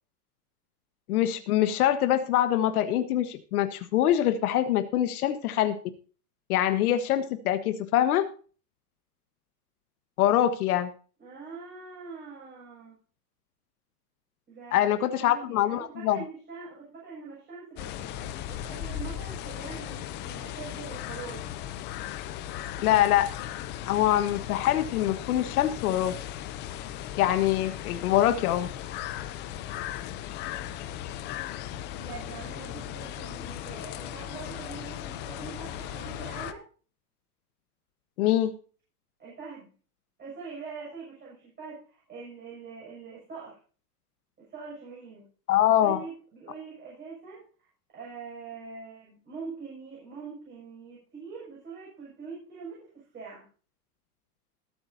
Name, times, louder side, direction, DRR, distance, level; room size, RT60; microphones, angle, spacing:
voice 1, 1.1-5.8 6.5-8.2 10.2-10.9 14.7-16.2 22.8-23.3 23.9-26.1 27.2-28.7 38.2-38.5 45.5-46.0, left 12 dB, 65° left, 10 dB, 1.4 m, -24 dB
voice 2, 11.2-12.9 14.5-21.4 32.0-36.6 39.2-39.7 40.2-43.6 44.5-45.2 45.7-47.4 47.9-53.5, right 5 dB, 20° right, -5 dB, 6.9 m, -43 dB
sound 1, 17.8-36.5, left 11 dB, 20° left, 0.6 m, -37 dB
20.5 x 8.8 x 2.8 m, 0.39 s
supercardioid pair, 150°, 49 cm